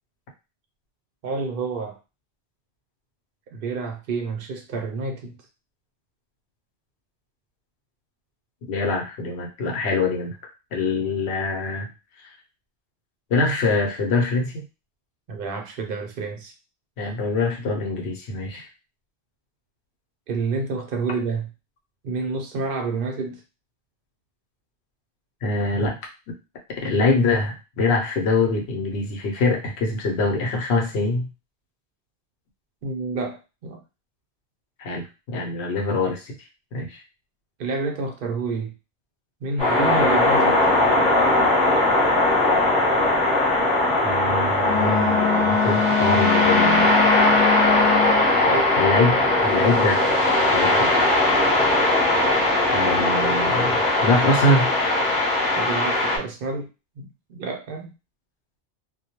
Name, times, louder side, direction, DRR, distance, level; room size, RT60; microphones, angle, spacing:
voice 1, 1.2-2.0 3.5-5.3 15.3-16.5 20.3-21.5 22.0-23.4 32.8-33.8 37.6-38.7 39.4-40.6 48.5-48.7 55.5-56.7 57.0-57.9, right 4 dB, 60° right, 3 dB, 0.8 m, -29 dB
voice 2, 8.7-10.4 10.7-11.9 13.3-14.5 17.0-18.7 25.4-26.0 26.8-31.3 34.8-36.3 36.7-37.0 44.0-46.9 48.8-50.1 50.5-51.0 52.7-54.7, left 3 dB, 85° left, 1 dB, 1.0 m, -24 dB
sound 1, 39.6-56.2, left 2 dB, 5° left, 0.8 m, -19 dB
Wind instrument woodwind instrument, 44.6-48.3, left 6 dB, 25° right, 0.7 m, -23 dB
2.2 x 2.1 x 2.9 m, 0.29 s
omnidirectional pair, 1.1 m